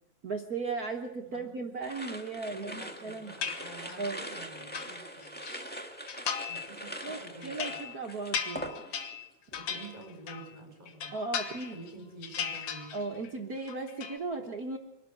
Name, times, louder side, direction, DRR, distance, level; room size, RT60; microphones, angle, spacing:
voice 1, 0.2-3.3 4.0-4.2 7.0-8.7 11.1-11.8 12.9-14.8, right 3 dB, 55° right, 2 dB, 1.0 m, -36 dB
voice 2, 1.3-1.8 2.5-5.5 6.5-7.9 9.5-11.1 11.7-12.9, right 2 dB, 15° right, 4 dB, 4.3 m, -49 dB
sound 1, 1.8-9.2 9.5-10.0, equal, 10° left, 0.4 m, -42 dB
sound 2, 3.4-4.1 4.5-5.6 6.1-6.7 7.0-10.5 10.9-11.9 12.2-13.3 13.6-14.2, left 7 dB, 75° left, 2.6 m, -37 dB
23.5 x 12.5 x 8.9 m, 0.87 s
omnidirectional pair, 3.3 m